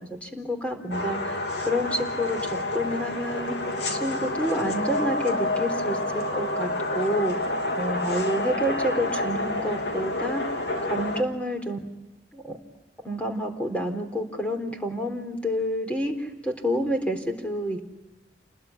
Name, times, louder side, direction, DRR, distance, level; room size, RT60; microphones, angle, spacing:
voice 1, 0.0-3.6 3.9-7.4 7.8-10.4 10.8-11.8 12.3-12.6 13.0-17.9, equal, 10° left, 4 dB, 3.8 m, -29 dB
sound 1, 0.9-11.2, left 2 dB, 75° left, 2.9 m, -28 dB
29.5 x 20.5 x 9.8 m, 1.1 s
head